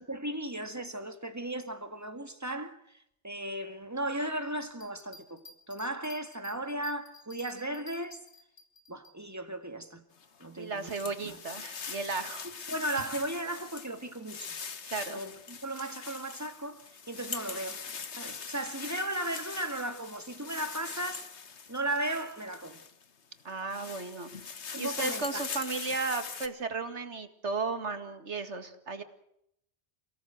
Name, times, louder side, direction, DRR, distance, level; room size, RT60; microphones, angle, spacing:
voice 1, 0.0-3.0 3.2-5.4 5.7-8.2 8.9-10.0 10.4-10.9 11.2-11.4 12.4-14.6 15.1-16.8 17.1-17.8 18.2-21.2 21.7-22.8 24.7-25.5, right 1 dB, 15° right, 2.1 m, -36 dB
sound 1, 4.7-9.1, left 3 dB, 60° left, 4.0 m, -53 dB
sound 2, 10.2-23.0 23.5-26.5, left 6 dB, 80° left, 1.6 m, -42 dB
voice 2, 10.6-12.5 14.8-15.2 23.4-24.3 24.8-29.0, right 4 dB, 85° right, 2.3 m, -35 dB
28.5 x 17.5 x 7.9 m
omnidirectional pair, 1.1 m